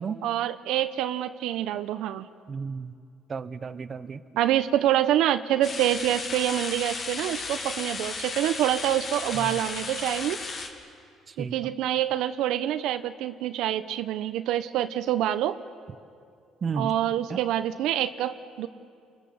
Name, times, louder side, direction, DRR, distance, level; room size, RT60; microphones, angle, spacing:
voice 1, 0.2-2.3 4.4-10.4 11.4-15.6 16.8-18.7, right 12 dB, 80° right, 10 dB, 0.8 m, -26 dB
voice 2, 2.5-2.9 3.3-4.2 9.3-9.6 11.3-11.5 16.6-16.9 17.3-17.4, right 5 dB, 35° right, 11 dB, 0.9 m, -33 dB
sound 1, 5.6-10.7, left 4 dB, 45° left, 2.8 m, -34 dB
28.5 x 23.5 x 7.1 m, 2.3 s
cardioid pair, 125°, 0 cm